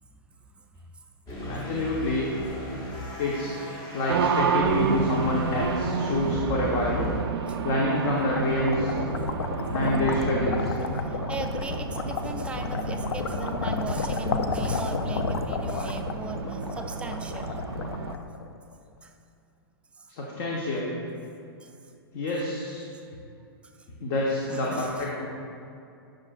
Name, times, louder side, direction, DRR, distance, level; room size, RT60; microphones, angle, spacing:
sound 1, 1.3-7.2, equal, 25° left, 1.4 m, -36 dB
voice 1, 1.4-2.4 3.2-3.6 3.9-7.1 7.6-9.0 9.7-10.7 20.1-21.0 22.1-22.9 24.0-25.3, left 1 dB, 45° left, -3 dB, 1.0 m, -27 dB
Race car auto racing, 4.1-18.2, right 6 dB, 80° right, 0.4 m, -31 dB
sound 2, 7.6-18.7, left 5 dB, 80° left, 0.5 m, -31 dB
voice 2, 11.1-17.6 19.0-19.1 20.0-20.1 21.6-21.7 24.5-25.1, right 3 dB, 10° right, 4 dB, 0.4 m, -38 dB
9.5 x 6.4 x 2.4 m, 2.6 s
hypercardioid pair, 125°, 13 cm